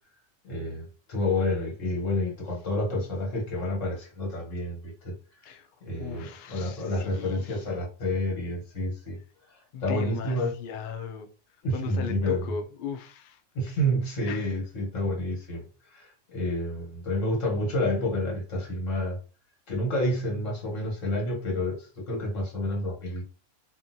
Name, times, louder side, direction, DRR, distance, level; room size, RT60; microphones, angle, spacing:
voice 1, 0.4-5.1 5.8-9.2 9.5-10.5 11.6-12.5 13.5-19.2 19.7-23.2, left 1 dB, 65° left, 1.5 m, -29 dB
voice 2, 6.0-7.6 9.7-11.3 11.7-13.4 14.3-14.5, left 6 dB, 85° left, 0.4 m, -38 dB
2.7 x 2.5 x 2.7 m
omnidirectional pair, 1.5 m